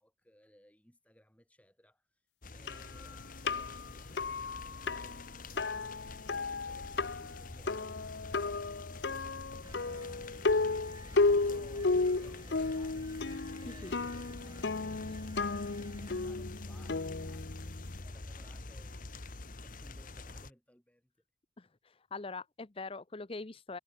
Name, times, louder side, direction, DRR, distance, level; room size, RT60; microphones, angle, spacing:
voice 1, 0.0-2.2 2.5-9.1 9.9-10.9 11.3-13.2 13.6-17.7 18.0-21.1, equal, 5° left, 4.8 m, -63 dB
sound 1, 2.4-20.5, left 2 dB, 45° left, 1.4 m, -47 dB
sound 2, 2.7-18.0, left 3 dB, 60° left, 0.8 m, -34 dB
sound 3, 9.6-16.3, right 2 dB, 20° right, 1.5 m, -56 dB
voice 2, 21.6-23.8, left 3 dB, 30° left, 0.7 m, -43 dB
head